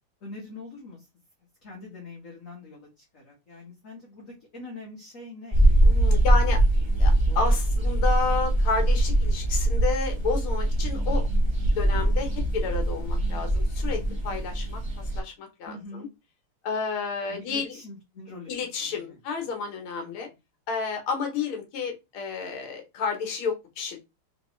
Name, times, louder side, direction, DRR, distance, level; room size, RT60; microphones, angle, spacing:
voice 1, 0.2-1.1 1.6-5.7 6.3-6.4 7.0-7.4 15.6-16.1 17.3-18.5 18.8-19.5 20.0-20.3, left 2 dB, 45° left, -3 dB, 1.3 m, -44 dB
sound 1, 5.5-15.2, right 1 dB, 15° right, 1.2 m, -22 dB
voice 2, 5.8-6.6 7.0-11.3 11.8-14.8 15.2-16.1 16.6-17.7 18.5-20.3 20.7-24.0, left 5 dB, 75° left, 4 dB, 1.8 m, -31 dB
4.0 x 3.0 x 3.0 m, 0.23 s
omnidirectional pair, 2.4 m